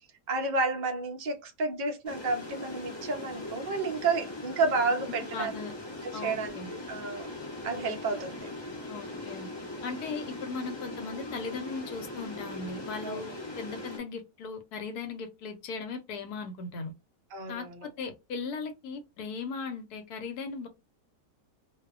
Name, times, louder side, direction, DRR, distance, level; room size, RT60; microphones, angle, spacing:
voice 1, 0.3-5.5 6.1-7.3 7.6-8.5 13.0-13.2 17.3-17.9, right 3 dB, 60° right, 0.4 m, -31 dB
sound 1, 2.1-14.0, left 2 dB, 30° left, 0.5 m, -40 dB
voice 2, 5.3-5.7 6.1-6.7 8.9-9.5 9.8-16.9 17.5-20.7, left 4 dB, 80° left, 1.1 m, -38 dB
2.6 x 2.1 x 2.3 m
omnidirectional pair, 1.7 m